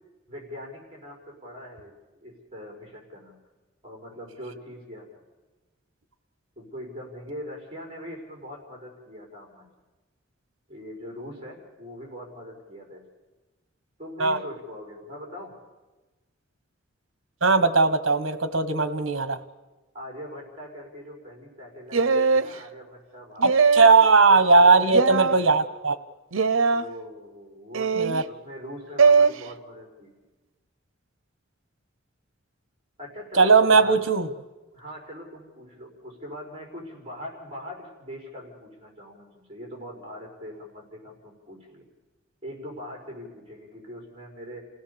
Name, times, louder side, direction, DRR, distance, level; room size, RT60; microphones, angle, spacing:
voice 1, 0.3-3.4 3.8-5.2 6.6-9.7 10.7-13.0 14.0-15.6 19.9-23.6 24.3-25.6 26.7-30.2 33.0-34.0 34.7-41.9 42.4-44.6, equal, 30° right, 2 dB, 5.5 m, -41 dB
voice 2, 17.4-19.4 23.4-26.0 27.9-28.2 33.3-34.3, right 4 dB, 70° right, 12 dB, 1.4 m, -18 dB
sound 1, 21.9-22.5 23.4-24.0 24.9-25.4 26.3-26.8 27.7-28.2 29.0-29.3, right 5 dB, 85° right, 0.8 m, -20 dB
28.0 x 17.0 x 7.1 m, 1.2 s
head